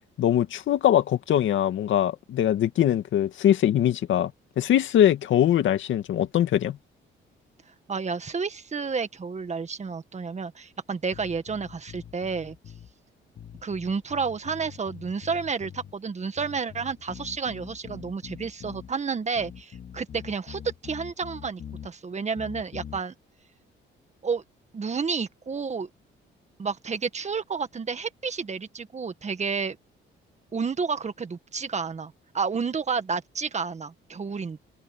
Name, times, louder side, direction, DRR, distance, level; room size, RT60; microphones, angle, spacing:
voice 1, 0.2-4.3 4.6-6.8, left 11 dB, 75° left, 2.3 m, -22 dB
voice 2, 7.9-12.5 13.6-23.1 24.2-24.4 24.7-25.9 26.6-29.8 30.5-34.6, right 5 dB, 35° right, 1.8 m, -30 dB
sound 1, 11.1-12.9 13.4-15.9 16.4-18.9 19.4-21.9 22.3-23.0, left 8 dB, 55° left, 2.6 m, -44 dB
cardioid pair, 90°, 20 cm